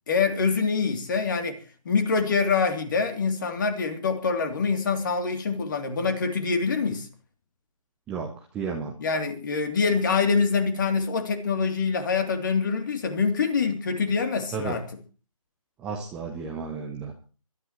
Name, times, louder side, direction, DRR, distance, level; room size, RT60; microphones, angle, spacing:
voice 1, 0.1-1.6 1.8-7.1 9.0-14.8, left 5 dB, 35° left, 2.9 m, -25 dB
voice 2, 8.5-8.9 14.5-14.8 15.8-17.1, right 5 dB, 5° right, 0.7 m, -32 dB
25.5 x 13.0 x 3.1 m
figure-of-eight pair, 155°, 18 cm